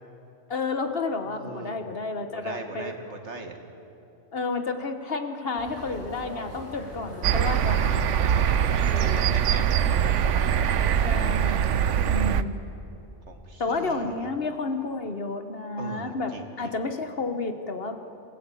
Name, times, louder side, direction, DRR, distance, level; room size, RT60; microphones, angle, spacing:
voice 1, 0.5-2.9 4.3-8.2 8.8-9.4 11.0-11.6 12.0-12.5 13.6-18.0, left 3 dB, 55° left, 7 dB, 1.5 m, -31 dB
voice 2, 1.2-1.8 2.3-3.6 7.5-11.6 12.1-12.6 13.3-14.3 15.8-16.7, right 3 dB, 70° right, 4 dB, 2.2 m, -40 dB
sound 1, 5.6-11.5, equal, 35° left, 5.5 m, -41 dB
sound 2, 7.2-12.4, right 9 dB, 90° right, 1.0 m, -23 dB
27.5 x 15.5 x 8.4 m, 2.9 s
omnidirectional pair, 1.2 m